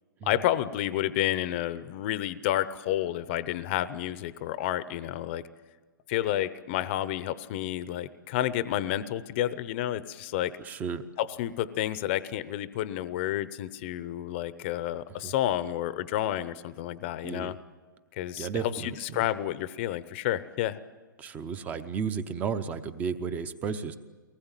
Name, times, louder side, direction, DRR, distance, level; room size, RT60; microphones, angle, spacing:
voice 1, 0.2-5.4 6.1-10.6 11.2-17.6 18.1-20.8, left 13 dB, 30° left, 15 dB, 0.8 m, -30 dB
voice 2, 10.6-11.0 15.2-15.3 17.2-17.6 18.4-19.2 21.2-24.0, right 6 dB, 15° right, 12 dB, 0.8 m, -33 dB
23.5 x 19.5 x 9.1 m, 1.4 s
hypercardioid pair, 160°, 11 cm